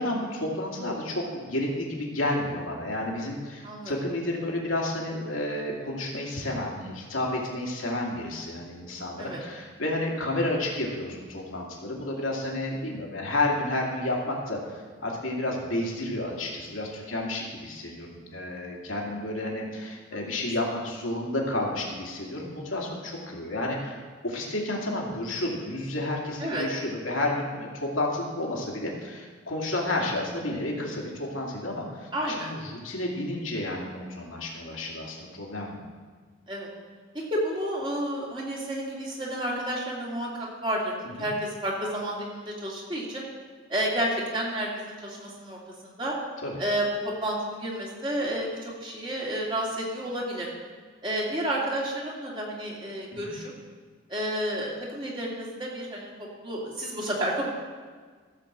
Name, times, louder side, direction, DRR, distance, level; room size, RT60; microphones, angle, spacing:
voice 1, 0.0-35.8 41.2-41.3 46.4-46.6 53.1-53.3, left 1 dB, 85° left, -1 dB, 2.5 m, -31 dB
voice 2, 32.1-32.5 36.5-36.7 37.1-43.2 43.7-46.1 46.6-50.5 51.0-53.5 54.1-57.4, right 1 dB, 25° right, -3 dB, 2.3 m, -31 dB
15.0 x 5.3 x 7.4 m, 1.5 s
head